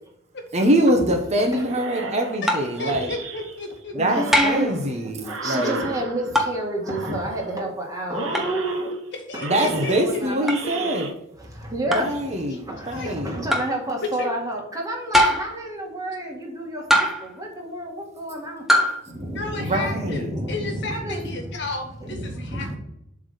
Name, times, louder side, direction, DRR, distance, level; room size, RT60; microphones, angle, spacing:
voice 1, 0.5-3.1 3.9-5.8 9.4-11.1 11.9-13.3 19.6-20.3, right 1 dB, 35° right, 4 dB, 1.0 m, -23 dB
sound 1, 1.6-3.7 4.1-6.5 6.8-7.7 8.1-9.1 9.3-11.1, right 4 dB, 85° right, 1.1 m, -35 dB
sound 2, 2.5-2.8 4.3-4.7 6.3-6.6 8.3-8.5 10.5-10.6 11.9-12.2 13.5-13.8 15.1-15.6 16.9-17.3 18.7-19.0, equal, ahead, 0.9 m, -21 dB
voice 2, 2.8-4.2 5.4-5.8 8.3-8.4 9.3-10.2 12.5-12.6 12.9-13.1 14.2-14.3 19.3-22.8, left 3 dB, 60° left, 3 dB, 1.7 m, -33 dB
voice 3, 3.9-4.7 5.0-8.9 9.3-10.9 11.4-18.6 19.1-21.4 22.0-22.8, right 1 dB, 20° right, -1 dB, 2.0 m, -30 dB
7.7 x 3.6 x 6.4 m, 0.78 s
head